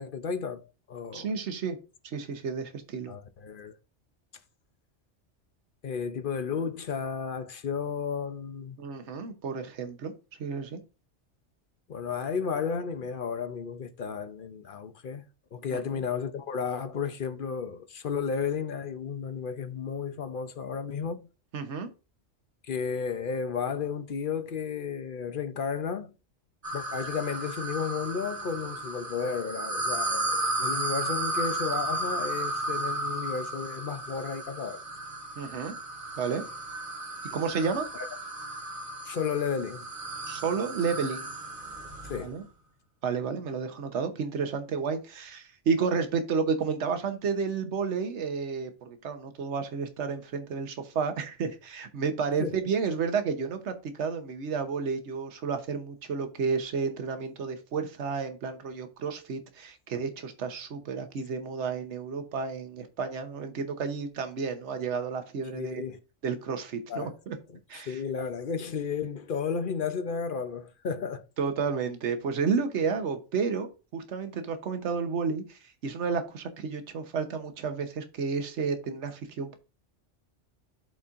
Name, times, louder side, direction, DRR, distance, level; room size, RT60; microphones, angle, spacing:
voice 1, 0.0-1.3 3.1-3.7 5.8-8.8 11.9-15.2 15.5-21.3 22.7-26.1 26.7-34.8 39.0-39.9 42.0-42.4 52.4-52.6 65.5-66.0 66.9-67.1 67.5-71.2, left 6 dB, 50° left, 0.8 m, -33 dB
voice 2, 1.1-1.8 2.0-3.1 8.8-10.1 10.4-10.8 15.7-16.0 21.5-21.9 35.4-35.7 36.2-36.4 37.3-37.9 40.3-41.4 42.2-42.4 43.0-65.8 66.2-67.4 67.7-68.0 71.4-79.6, right 5 dB, 70° right, 1.2 m, -31 dB
sound 1, 26.6-42.3, right 2 dB, 45° right, 1.6 m, -34 dB
12.0 x 4.2 x 2.5 m
omnidirectional pair, 1.2 m